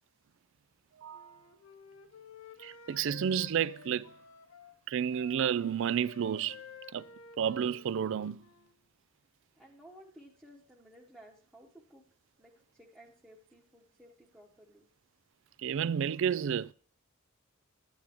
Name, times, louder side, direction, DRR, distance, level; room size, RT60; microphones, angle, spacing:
voice 1, 1.0-1.4 2.6-4.1 4.9-6.6 6.9-7.1 7.4-8.5 15.6-16.7, right 8 dB, 60° right, 0.3 m, -31 dB
Wind instrument woodwind instrument, 1.1-4.8 5.1-8.7, left 6 dB, 90° left, 0.8 m, -53 dB
voice 2, 9.5-12.0 12.4-14.9, equal, 10° right, 1.0 m, -56 dB
11.0 x 9.1 x 2.9 m
head